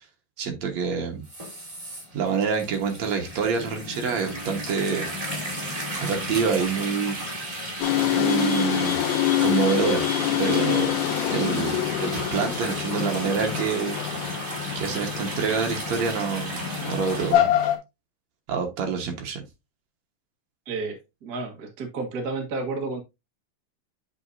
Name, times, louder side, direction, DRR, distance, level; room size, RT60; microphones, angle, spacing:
voice 1, 0.4-1.3 2.1-5.1 5.9-7.2 8.1-9.0 9.4-10.1 10.4-10.9 11.3-14.0 14.8-17.6 18.5-19.4, right 6 dB, 60° right, 2.1 m, -27 dB
sound 1, 1.2-17.3, equal, 10° right, 2.0 m, -34 dB
sound 2, 7.8-17.8, left 11 dB, 85° left, 3.3 m, -26 dB
voice 2, 20.7-23.0, right 3 dB, 75° right, 0.8 m, -31 dB
8.1 x 6.3 x 2.6 m
omnidirectional pair, 4.1 m